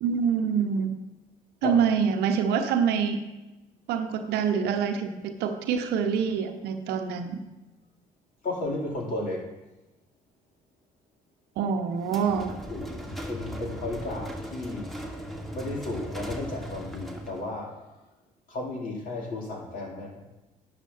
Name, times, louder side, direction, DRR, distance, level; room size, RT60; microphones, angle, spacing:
voice 1, 0.0-0.9 1.6-3.2 3.9-7.4 11.6-12.5, right 7 dB, 60° right, 7 dB, 0.9 m, -26 dB
voice 2, 8.4-9.5 12.7-14.9 15.5-17.9 18.5-20.2, left 2 dB, 50° left, -1 dB, 2.7 m, -34 dB
sound 1, 12.0-17.5, equal, ahead, 1.4 m, -38 dB
12.5 x 9.1 x 2.7 m, 1.1 s
figure-of-eight pair, 50°, 19 cm